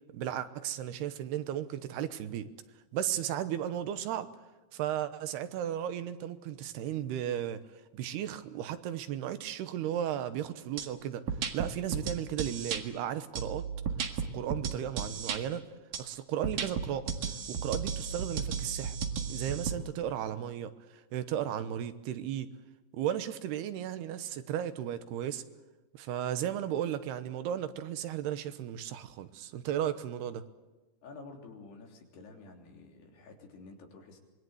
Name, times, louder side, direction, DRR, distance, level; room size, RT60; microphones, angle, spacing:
voice 1, 0.1-2.5 2.9-4.3 4.7-13.7 14.2-15.6 16.0-17.1 17.5-19.0 19.3-22.5 22.9-25.4 25.9-30.4, right 10 dB, 85° right, 11 dB, 3.2 m, -35 dB
sound 1, 10.8-10.9 11.3-12.8 13.4-15.4 15.9-16.0 16.4-19.7, right 6 dB, 55° right, 2.9 m, -34 dB
voice 2, 31.0-34.2, left 3 dB, 85° left, 2 dB, 5.4 m, -50 dB
25.5 x 22.0 x 8.0 m, 1.2 s
omnidirectional pair, 4.5 m